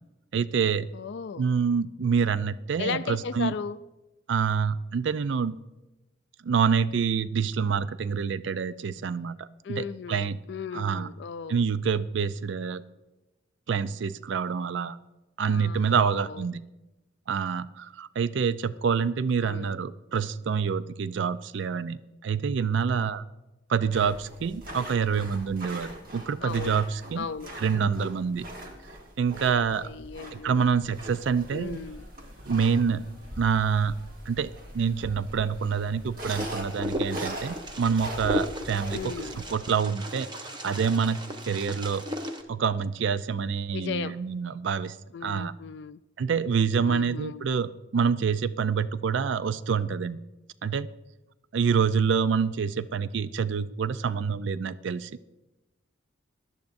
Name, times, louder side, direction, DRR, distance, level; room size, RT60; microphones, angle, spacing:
voice 1, 0.3-0.9 1.4-3.5 4.3-5.6 6.4-10.4 10.7-11.1 11.5-12.8 13.7-15.0 15.4-16.6 17.3-23.2 23.7-27.3 27.6-28.5 29.2-29.9 30.4-31.8 32.5-33.0 33.4-34.0 34.3-39.1 39.5-40.3 40.6-41.2 41.5-42.0 42.5-45.0 45.2-45.5 46.2-50.2 50.6-50.9 51.5-55.1, right 6 dB, 65° right, 15 dB, 0.4 m, -27 dB
voice 2, 0.9-1.4 2.8-3.8 9.6-11.6 15.5-16.4 19.4-19.7 26.4-26.8 27.2-27.5 29.8-30.7 31.5-32.1 38.9-39.4 43.7-44.2 45.1-46.0 46.8-47.5, left 6 dB, 60° left, 14 dB, 0.3 m, -36 dB
sound 1, 23.9-39.5, right 1 dB, 45° right, 1.4 m, -42 dB
sound 2, 30.6-39.5, right 1 dB, 85° right, 3.1 m, -59 dB
Wind, 36.4-42.4, equal, 20° right, 0.7 m, -35 dB
17.5 x 11.5 x 2.6 m, 1.0 s
head